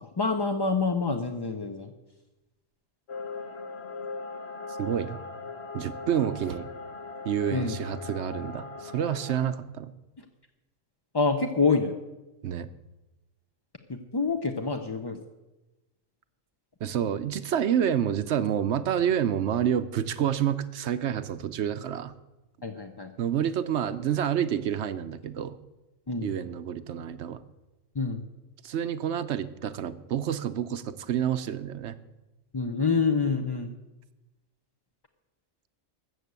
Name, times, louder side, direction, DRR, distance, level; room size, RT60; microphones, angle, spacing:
voice 1, 0.0-1.9 7.5-7.8 11.1-11.9 13.9-15.2 22.6-23.1 26.1-26.4 28.0-28.2 32.5-33.7, left 4 dB, 30° left, 5 dB, 0.5 m, -27 dB
sound 1, 3.1-9.5, left 3 dB, 55° left, 1.2 m, -39 dB
voice 2, 4.8-5.2 5.7-6.7 7.2-9.9 12.4-12.7 16.8-22.1 23.2-25.6 26.2-27.4 28.6-31.9, right 9 dB, 65° right, 12 dB, 0.9 m, -28 dB
14.0 x 6.5 x 8.1 m, 1.0 s
omnidirectional pair, 1.3 m